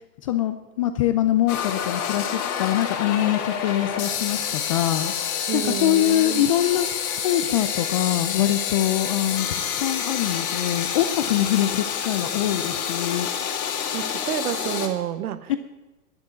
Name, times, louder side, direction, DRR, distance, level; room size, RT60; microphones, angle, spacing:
voice 1, 0.2-5.1 5.5-6.9 7.2-13.3 15.5-15.6, left 12 dB, 25° left, 9 dB, 0.4 m, -24 dB
sound 1, 1.5-14.9, left 8 dB, 60° left, 3.4 m, -28 dB
voice 2, 5.5-6.4 13.9-15.5, right 11 dB, 60° right, 13 dB, 1.3 m, -29 dB
11.5 x 9.7 x 9.3 m, 1.1 s
hypercardioid pair, 120°, 49 cm